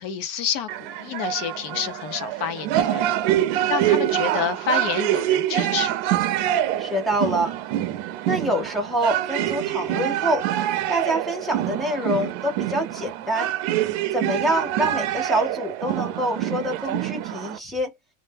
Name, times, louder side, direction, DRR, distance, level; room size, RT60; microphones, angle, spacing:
voice 1, 0.0-3.1 3.7-6.0, left 8 dB, 65° left, 0.7 m, -28 dB
sound 1, 0.7-17.6, right 12 dB, 60° right, 0.5 m, -25 dB
voice 2, 6.8-7.5 8.3-10.5 10.9-13.5 14.1-17.9, equal, ahead, 0.3 m, -26 dB
2.1 x 2.1 x 3.2 m
cardioid pair, 165°, 40 cm